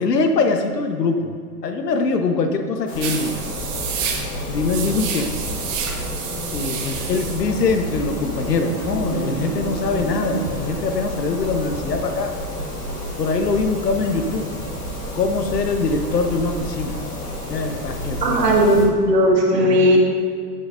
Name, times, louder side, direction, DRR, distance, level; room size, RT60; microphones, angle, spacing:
voice 1, 0.0-1.3 1.6-3.5 4.5-5.3 6.5-12.3 13.2-14.5 15.1-17.0 17.5-18.5 19.7-20.0, left 4 dB, 85° left, 5 dB, 1.2 m, -23 dB
sound 1, 2.9-18.8, left 1 dB, 15° left, 2.1 m, -30 dB
sound 2, 3.0-10.5, right 7 dB, 50° right, 1.4 m, -30 dB
voice 2, 18.2-20.0, equal, 85° right, -1 dB, 2.2 m, -16 dB
15.5 x 6.2 x 2.6 m, 2.1 s
hypercardioid pair, 125°, 48 cm